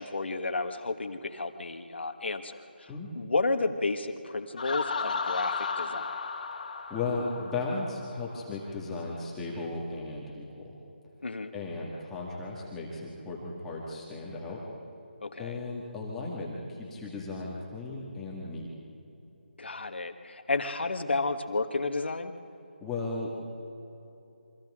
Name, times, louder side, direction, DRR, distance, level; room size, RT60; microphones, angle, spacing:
voice 1, 0.0-6.1 11.2-11.5 15.2-15.6 19.6-22.3, left 3 dB, 75° left, 7 dB, 1.7 m, -32 dB
Laughter, 4.6-8.3, left 5 dB, 50° left, 2.1 m, -34 dB
voice 2, 6.9-10.7 11.5-14.6 15.4-18.7 22.8-23.4, left 3 dB, 5° left, -5 dB, 1.9 m, -36 dB
28.0 x 24.5 x 3.8 m, 2.9 s
figure-of-eight pair, 170°, 6 cm